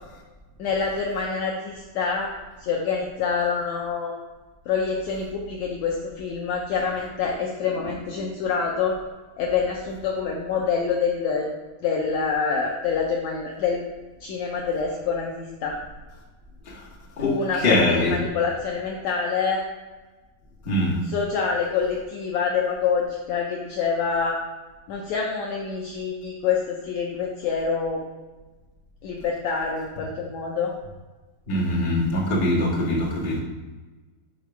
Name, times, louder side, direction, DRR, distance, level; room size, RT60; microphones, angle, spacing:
voice 1, 0.6-2.3 2.6-4.2 4.7-9.0 9.4-11.5 11.8-13.9 14.2-15.8 17.2-19.6 21.0-24.4 24.9-28.0 29.0-30.7, left 5 dB, 85° left, -1 dB, 1.6 m, -26 dB
voice 2, 17.6-18.2 20.6-20.9 31.5-33.4, left 1 dB, 35° left, -6 dB, 1.0 m, -22 dB
6.5 x 4.1 x 5.8 m, 1.3 s
omnidirectional pair, 4.1 m